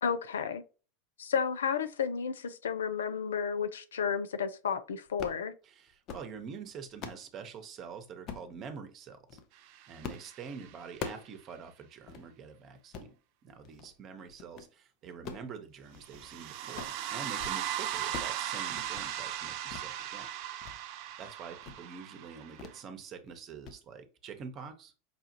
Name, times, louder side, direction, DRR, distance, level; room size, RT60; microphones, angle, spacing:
voice 1, 0.0-0.6 1.2-5.5, left 7 dB, 75° left, 0.5 m, -32 dB
sound 1, 5.1-5.4 5.9-6.3 6.7-7.3 8.3-8.5 9.1-9.5 10.0-10.3 10.6-11.3 11.7-11.8 12.1-12.2 12.8-13.1 13.6-13.9 14.3-14.7 15.1-16.3 16.6-17.0 17.3-17.6 17.8-18.4 18.7-19.1 19.7-19.9 20.3-20.8 21.1-21.2 21.6-21.9 22.6-22.8 23.1-23.3 23.6-23.8, left 6 dB, 45° left, 0.8 m, -44 dB
voice 2, 5.6-9.4 9.9-13.1 13.4-20.3 21.2-24.9, right 6 dB, 40° right, 0.9 m, -46 dB
sound 2, 9.7-10.8 16.0-22.8, right 11 dB, 55° right, 0.4 m, -38 dB
5.6 x 2.4 x 2.9 m
figure-of-eight pair, 85°, 0 cm